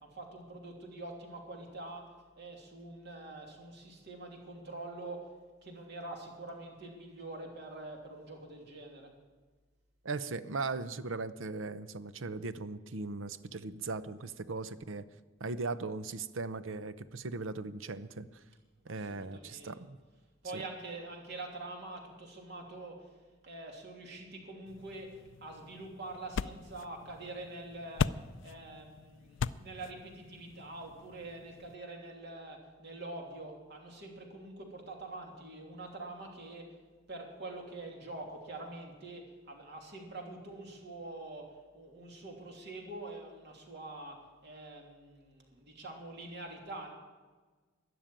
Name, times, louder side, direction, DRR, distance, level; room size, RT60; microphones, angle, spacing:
voice 1, 0.0-2.1 2.4-5.3 5.6-9.1 19.0-19.7 20.4-23.0 23.4-28.1 28.4-36.7 37.1-41.5 41.7-44.2 44.4-46.9, right 2 dB, 55° right, 1 dB, 3.0 m, -45 dB
voice 2, 10.0-15.1 15.4-18.3 18.8-20.0 20.5-20.6, right 3 dB, 75° right, 13 dB, 0.7 m, -38 dB
sound 1, 24.7-31.7, left 6 dB, 65° left, 0.4 m, -40 dB
13.0 x 11.0 x 9.0 m, 1.4 s
head